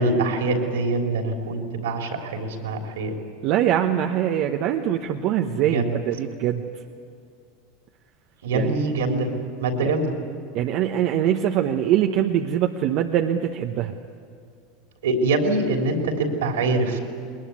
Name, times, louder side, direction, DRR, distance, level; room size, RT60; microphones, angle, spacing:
voice 1, 0.0-3.1 5.6-5.9 8.4-9.3 9.6-10.1 15.0-17.0, right 2 dB, 80° right, 3 dB, 3.4 m, -24 dB
voice 2, 3.4-6.6 8.5-8.8 9.8-9.9 10.5-13.9, right 10 dB, 55° right, 4 dB, 1.1 m, -23 dB
21.0 x 20.5 x 9.6 m, 2.3 s
hypercardioid pair, 90°, 0 cm